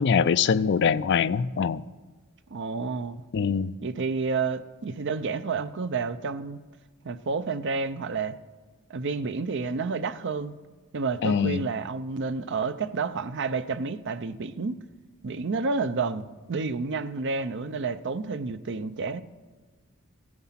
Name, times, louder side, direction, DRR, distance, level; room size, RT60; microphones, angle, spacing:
voice 1, 0.0-1.8 3.3-3.7 11.2-11.6, left 6 dB, 55° left, 0.4 m, -23 dB
voice 2, 2.5-3.2 3.8-6.6 7.0-8.4 8.9-10.5 10.9-14.7 15.2-19.2, right 4 dB, 55° right, 0.6 m, -30 dB
15.5 x 9.5 x 5.8 m
head